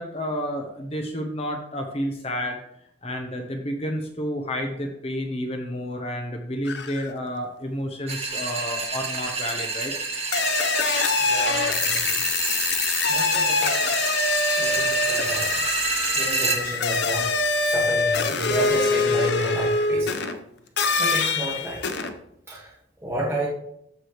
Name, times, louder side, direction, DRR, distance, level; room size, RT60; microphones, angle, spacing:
voice 1, 0.0-2.6 3.0-9.9 11.1-11.2 12.2-12.3, equal, 30° left, 3 dB, 1.0 m, -30 dB
sound 1, 6.7-7.1 9.1-9.2 10.3-20.4 20.8-22.1, left 4 dB, 60° left, 0.8 m, -24 dB
sound 2, 8.1-16.6, right 4 dB, 35° right, 1.6 m, -28 dB
voice 2, 11.2-12.2 13.1-14.1 14.6-15.5 16.2-17.2 17.6-20.3 21.0-22.1 22.5-22.7 23.0-23.5, right 1 dB, 15° right, -7 dB, 1.9 m, -31 dB
14.5 x 5.0 x 3.3 m, 0.75 s
head